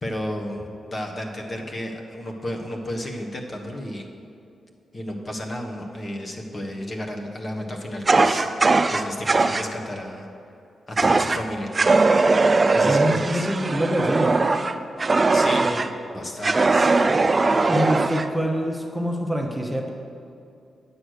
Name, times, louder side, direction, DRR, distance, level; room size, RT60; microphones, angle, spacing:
voice 1, 0.0-4.1 4.9-10.3 10.9-12.1 12.7-13.5 15.3-15.7 16.1-17.0, left 1 dB, 40° left, 1 dB, 1.4 m, -33 dB
Fire, 8.1-9.7 11.0-11.4 11.7-15.9 16.4-18.3, right 3 dB, 35° right, 0.5 m, -20 dB
voice 2, 12.8-14.4 15.6-15.8 16.1-16.3 17.7-19.9, equal, 5° right, 2 dB, 1.0 m, -25 dB
9.4 x 6.3 x 6.5 m, 2.6 s
cardioid pair, 60°, 0 cm